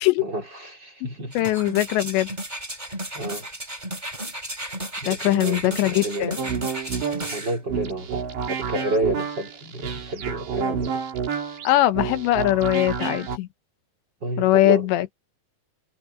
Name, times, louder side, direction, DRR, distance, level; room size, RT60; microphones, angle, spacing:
voice 1, 0.2-1.4 3.1-3.5 5.0-6.4 7.3-11.0 14.2-14.9, right 1 dB, 25° right, 4.1 m, -30 dB
voice 2, 1.3-2.3 5.1-6.4 11.6-13.5 14.4-15.1, left 15 dB, 90° left, 3.3 m, -21 dB
sound 1, 1.3-7.6 8.1-8.2, right 1 dB, 10° right, 4.5 m, -34 dB
sound 2, 6.4-13.4, right 6 dB, 80° right, 5.9 m, -29 dB
omnidirectional pair, 5.0 m